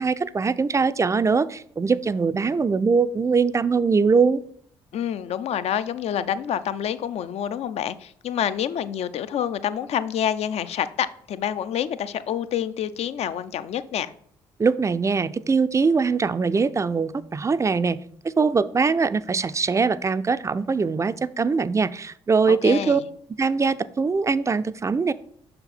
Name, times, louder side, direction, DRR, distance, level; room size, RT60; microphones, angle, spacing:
voice 1, 0.0-4.4 14.6-18.0 18.2-23.0 23.4-25.1, right 5 dB, 25° right, 14 dB, 0.4 m, -22 dB
voice 2, 4.9-14.1 22.5-23.0, left 9 dB, 55° left, 14 dB, 0.5 m, -27 dB
6.5 x 4.4 x 4.1 m, 0.64 s
hypercardioid pair, 50°, 13 cm